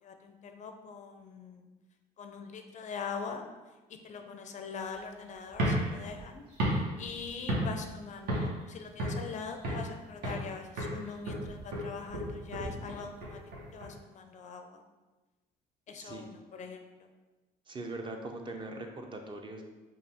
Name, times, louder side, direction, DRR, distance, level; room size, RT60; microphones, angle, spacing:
voice 1, 0.0-1.7 2.2-3.4 4.0-6.4 6.7-13.4 13.7-14.8 15.9-17.1, left 5 dB, 45° left, 6 dB, 0.4 m, -43 dB
sound 1, 5.5-7.9 8.3-8.6 9.0-9.9 10.2-10.5 10.8-13.9, equal, 75° right, 1.2 m, -33 dB
voice 2, 16.0-16.3 17.7-19.6, right 2 dB, 30° right, 3 dB, 0.5 m, -41 dB
5.2 x 2.3 x 3.4 m, 1.2 s
cardioid pair, 110°, 17 cm